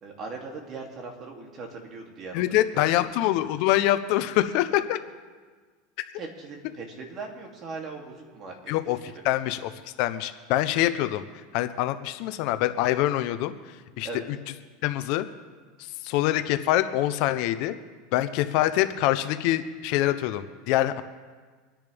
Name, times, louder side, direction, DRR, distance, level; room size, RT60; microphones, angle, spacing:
voice 1, 0.0-2.4 2.7-2.8 6.2-8.7 9.0-9.1 14.0-14.3, right 4 dB, 40° right, 1 dB, 2.8 m, -39 dB
voice 2, 2.3-5.0 8.7-9.0 9.2-11.2 11.5-14.1 14.8-15.3 15.8-17.7 18.1-21.0, left 14 dB, 60° left, 11 dB, 0.8 m, -25 dB
26.0 x 10.5 x 3.5 m, 1.5 s
supercardioid pair, 130°, 0 cm